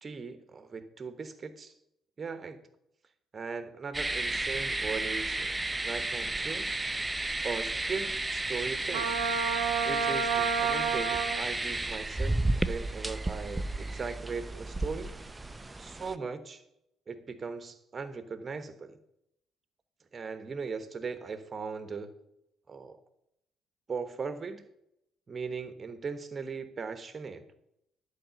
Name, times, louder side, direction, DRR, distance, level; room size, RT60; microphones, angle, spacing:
voice 1, 0.0-1.7 2.2-2.6 3.3-5.6 5.8-6.7 7.4-9.1 9.8-15.1 15.8-16.6 17.1-19.0 20.1-22.1 22.7-23.0 23.9-24.6 25.3-27.4, right 5 dB, 35° right, 11 dB, 1.1 m, -38 dB
sound 1, 3.9-16.1, right 2 dB, 20° right, 0.6 m, -33 dB
Trumpet, 8.9-11.4, right 6 dB, 80° right, 0.7 m, -30 dB
11.5 x 4.9 x 6.9 m, 0.80 s
hypercardioid pair, 50°, 0 cm